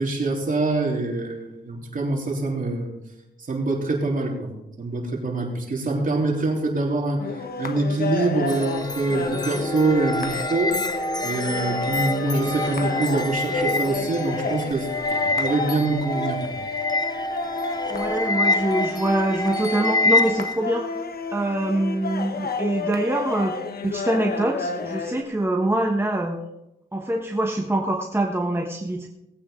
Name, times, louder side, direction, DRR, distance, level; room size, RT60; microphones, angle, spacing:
voice 1, 0.0-2.9 3.5-4.5 4.8-10.8 11.2-16.6, right 2 dB, 45° right, 0 dB, 3.5 m, -25 dB
sound 1, 7.2-25.2, left 4 dB, 50° left, 1.2 m, -31 dB
sound 2, 8.5-20.6, left 2 dB, 20° left, 1.0 m, -27 dB
voice 2, 17.9-20.9 21.3-23.6 23.8-26.4 26.9-29.1, right 1 dB, 10° right, 1 dB, 1.3 m, -24 dB
18.5 x 8.7 x 3.8 m, 0.90 s
cardioid pair, 80°, 20 cm